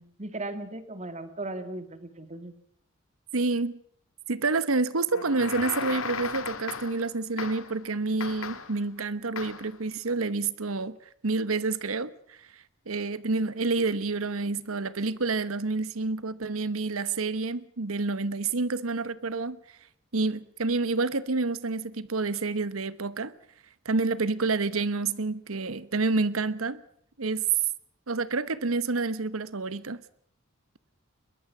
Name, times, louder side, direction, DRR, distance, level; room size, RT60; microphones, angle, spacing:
voice 1, 0.0-2.5, right 2 dB, 35° right, 2.4 m, -37 dB
voice 2, 3.3-3.8 4.3-11.0 11.2-19.6 20.1-23.3 23.8-26.8 27.2-27.4 28.1-30.0, right 3 dB, 90° right, 1.1 m, -28 dB
sound 1, 5.1-7.1 7.4-7.8 8.2-8.8 9.4-9.7, left 5 dB, 85° left, 1.8 m, -36 dB
22.5 x 21.0 x 6.1 m
head